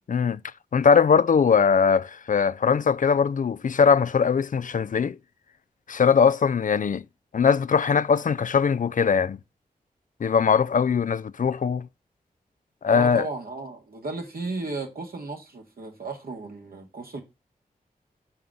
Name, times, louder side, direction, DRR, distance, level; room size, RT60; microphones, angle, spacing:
voice 1, 0.1-0.4 0.7-5.2 5.9-7.0 7.3-9.4 10.2-11.9 12.8-13.3, left 6 dB, 55° left, 0.4 m, -21 dB
voice 2, 12.9-17.2, right 3 dB, 70° right, 2.0 m, -34 dB
5.5 x 4.9 x 5.8 m
cardioid pair, 40°, 16 cm